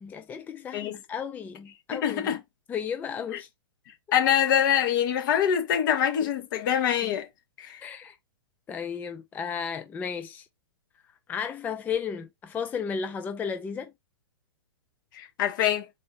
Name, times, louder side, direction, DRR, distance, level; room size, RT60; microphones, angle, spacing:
voice 1, 0.0-2.3 2.7-3.5 6.2-6.3 7.0-7.1 7.8-8.2 8.7-10.5 11.3-13.9, left 6 dB, 10° left, 0.4 m, -34 dB
voice 2, 1.9-2.4 4.1-7.3 7.6-7.8 15.1-15.9, left 9 dB, 45° left, 1.3 m, -24 dB
4.1 x 2.8 x 4.7 m
figure-of-eight pair, 110°, 14 cm